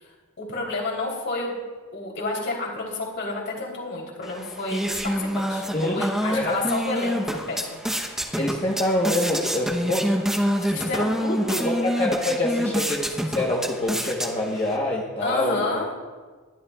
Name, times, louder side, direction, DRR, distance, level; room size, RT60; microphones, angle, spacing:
voice 1, 0.4-1.5 1.9-7.8 10.6-11.7 15.2-15.9, left 2 dB, 55° left, -2 dB, 3.3 m, -30 dB
sound 1, 4.2-14.8, equal, ahead, 0.8 m, -27 dB
voice 2, 5.7-6.0 6.3-6.6 8.4-10.1 11.6-15.7, left 1 dB, 25° left, -3 dB, 1.1 m, -25 dB
21.0 x 12.0 x 2.4 m, 1.4 s
head